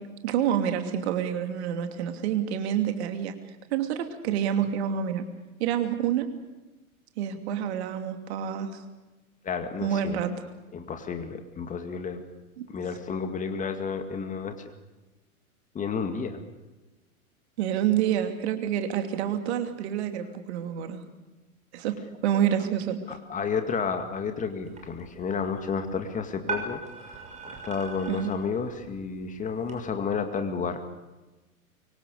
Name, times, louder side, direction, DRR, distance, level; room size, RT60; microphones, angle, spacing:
voice 1, 0.2-3.3 3.7-5.2 5.6-6.3 7.2-8.8 9.8-10.4 12.6-12.7 17.6-21.0 21.7-21.9 22.2-23.2 28.1-28.3, right 9 dB, 50° right, 6 dB, 2.8 m, -28 dB
voice 2, 9.4-10.2 10.7-12.2 12.7-14.6 15.7-16.4 23.1-30.8, left 5 dB, 15° left, 7 dB, 2.2 m, -31 dB
sound 1, 24.6-29.8, right 4 dB, 15° right, 6.4 m, -40 dB
25.0 x 24.5 x 6.8 m, 1.1 s
figure-of-eight pair, 100°, 43 cm